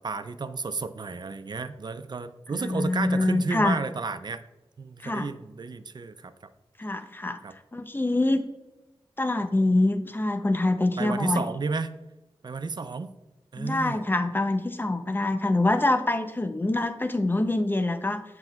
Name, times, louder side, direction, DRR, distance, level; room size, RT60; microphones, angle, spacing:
voice 1, 0.0-4.4 4.8-6.3 7.4-7.5 11.0-11.9 12.4-13.1 13.5-14.0, right 4 dB, 50° right, 12 dB, 0.4 m, -32 dB
voice 2, 2.5-3.8 5.0-5.3 6.8-7.4 7.7-8.5 9.2-11.4 13.6-18.2, left 2 dB, 20° left, 9 dB, 0.5 m, -25 dB
7.6 x 5.8 x 2.3 m, 1.1 s
wide cardioid pair, 75°, 10 cm